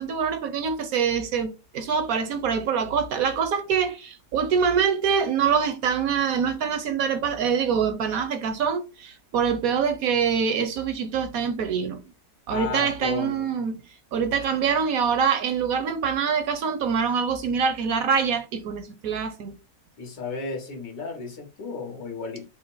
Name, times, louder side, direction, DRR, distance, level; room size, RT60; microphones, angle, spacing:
voice 1, 0.0-12.0 12.5-13.8 14.1-19.5, right 6 dB, 70° right, 0.9 m, -25 dB
voice 2, 12.5-13.5 20.0-22.5, left 5 dB, 80° left, 2.1 m, -33 dB
4.9 x 2.0 x 4.6 m
omnidirectional pair, 1.9 m